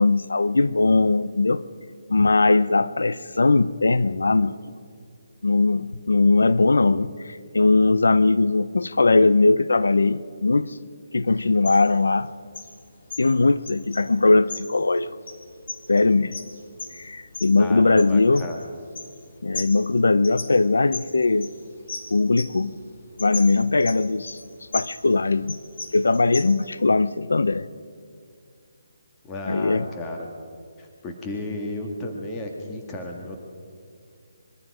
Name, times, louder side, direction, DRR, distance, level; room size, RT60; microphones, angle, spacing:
voice 1, 0.0-1.6 2.1-4.6 5.4-10.8 11.1-12.3 13.2-15.1 15.9-16.4 16.9-18.5 19.4-21.5 22.1-22.8 23.2-24.4 24.7-25.6 25.9-27.7 29.5-29.9, left 3 dB, 90° left, 0.6 m, -20 dB
sound 1, 11.3-26.7, left 3 dB, 55° left, 2.8 m, -39 dB
voice 2, 17.6-18.6 29.2-30.3 30.8-33.4, left 1 dB, 15° left, 2.0 m, -33 dB
25.5 x 23.0 x 5.0 m
hypercardioid pair, 160°, 0 cm